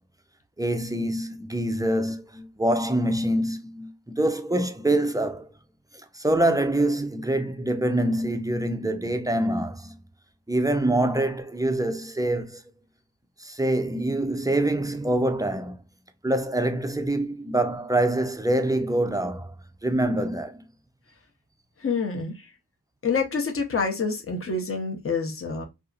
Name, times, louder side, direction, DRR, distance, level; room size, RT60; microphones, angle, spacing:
voice 1, 0.6-5.5 6.1-9.9 10.5-12.6 13.4-15.8 16.2-19.5 19.8-20.6, right 1 dB, 10° right, 0.3 m, -25 dB
voice 2, 21.8-22.4 23.0-25.6, left 4 dB, 35° left, 0.7 m, -27 dB
2.7 x 2.4 x 2.4 m
wide cardioid pair, 70°, 41 cm